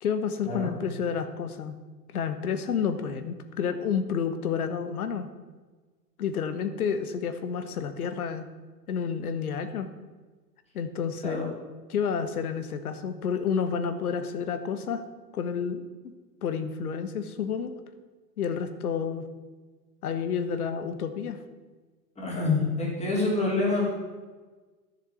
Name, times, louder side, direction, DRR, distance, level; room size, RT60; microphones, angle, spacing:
voice 1, 0.0-1.8 2.1-5.3 6.2-8.4 8.9-9.9 10.7-11.6 11.9-15.0 15.3-15.8 16.4-17.7 18.4-19.2 20.0-21.4, left 6 dB, 60° left, 10 dB, 1.4 m, -30 dB
voice 2, 22.2-23.9, left 3 dB, 15° left, -3 dB, 4.2 m, -26 dB
11.5 x 7.2 x 8.1 m, 1.3 s
figure-of-eight pair, 110°, 50 cm